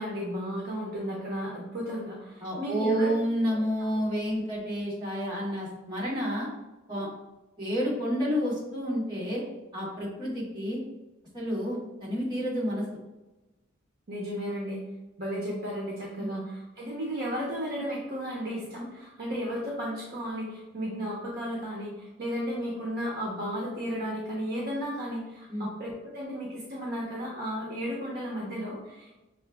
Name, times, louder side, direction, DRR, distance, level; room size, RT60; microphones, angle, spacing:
voice 1, 0.0-3.1 14.1-14.8 15.2-29.1, equal, 55° right, -4 dB, 0.8 m, -34 dB
voice 2, 2.4-6.5 6.9-7.1 7.6-9.4 9.7-10.8 11.3-12.8 16.2-16.3 25.5-25.7, equal, 25° right, -7 dB, 1.4 m, -30 dB
6.2 x 2.5 x 2.3 m, 1.1 s
head